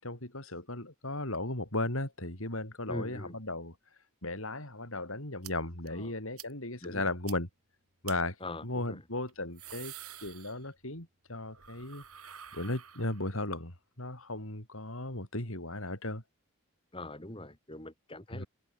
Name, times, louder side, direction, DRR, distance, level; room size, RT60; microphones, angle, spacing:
voice 1, 0.0-3.7 4.2-7.5 8.0-8.3 8.6-9.9 10.2-12.0 12.5-16.2 18.3-18.5, left 2 dB, 70° left, 6.7 m, -36 dB
voice 2, 2.9-3.3 5.9-6.1 6.8-7.1 8.4-9.0 16.9-18.4, left 1 dB, 25° left, 4.8 m, -42 dB
sound 1, 5.4-5.5 5.9-6.0 6.4-6.5 6.8-6.9 7.3-7.4 8.0-8.2 9.3-11.0 11.3-13.4, right 11 dB, 90° right, 4.1 m, -48 dB
head